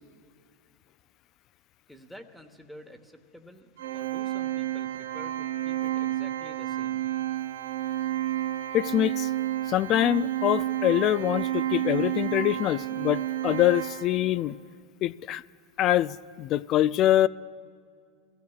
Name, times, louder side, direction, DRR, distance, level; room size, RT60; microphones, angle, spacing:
voice 1, 1.9-7.0, equal, 5° left, 1.1 m, -49 dB
Organ, 3.8-14.5, right 13 dB, 80° right, 0.5 m, -31 dB
voice 2, 8.7-9.3 9.7-14.6 15.0-15.4 15.8-17.3, left 13 dB, 45° left, 0.3 m, -24 dB
23.5 x 15.0 x 2.4 m
hypercardioid pair, 100°, 0 cm